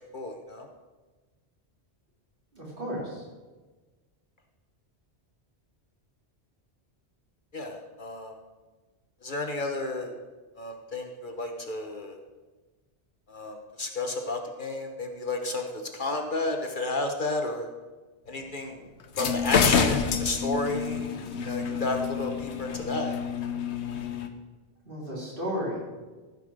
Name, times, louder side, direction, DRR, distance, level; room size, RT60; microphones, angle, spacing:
voice 1, 0.1-0.7 7.5-8.3 9.2-10.1 10.6-12.2 13.3-17.7 18.3-18.8 19.2-21.1 21.4-23.1, left 2 dB, 50° left, 4 dB, 1.1 m, -32 dB
voice 2, 2.5-3.3 24.8-25.8, equal, 55° right, -4 dB, 3.6 m, -33 dB
sound 1, 19.0-24.3, left 6 dB, 80° left, 1.1 m, -28 dB
14.5 x 5.5 x 6.4 m, 1.3 s
omnidirectional pair, 1.1 m